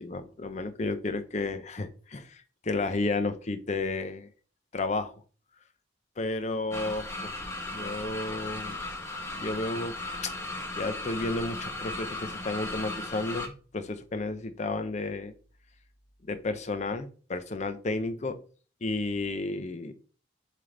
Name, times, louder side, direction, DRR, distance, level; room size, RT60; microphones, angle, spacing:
voice 1, 0.0-4.3 4.7-5.1 6.2-7.3 7.7-8.8 9.3-10.0 10.2-10.3 10.8-15.3 16.2-18.4 18.8-19.9, left 2 dB, 40° left, 11 dB, 0.6 m, -32 dB
sound 1, 6.7-13.5, left 2 dB, 15° left, 0.9 m, -36 dB
7.4 x 3.4 x 3.8 m, 0.39 s
head